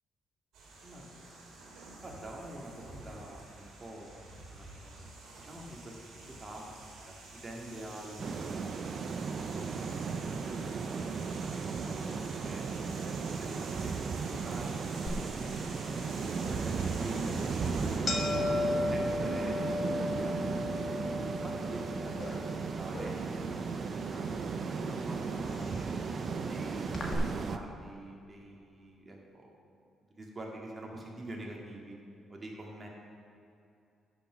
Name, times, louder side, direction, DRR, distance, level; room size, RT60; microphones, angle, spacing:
sound 1, 0.5-18.0, right 2 dB, 85° right, 2.3 m, -49 dB
voice 1, 0.8-1.5 2.0-4.2 4.5-4.9 5.3-6.6 7.1-7.2 7.4-8.9 9.3-12.1 12.3-12.6 13.0-13.9 14.3-15.2 15.6-17.2 17.6-18.6 18.9-20.8 21.3-24.3 24.7-26.0 26.4-29.5 30.1-32.0 32.3-32.9, right 1 dB, 25° right, -1 dB, 2.0 m, -46 dB
sound 2, 8.2-27.6, right 5 dB, 50° right, 0.5 m, -35 dB
sound 3, 15.1-27.1, left 2 dB, 40° left, 1.6 m, -38 dB
10.0 x 6.2 x 5.7 m, 2.6 s
cardioid pair, 90°, 0 cm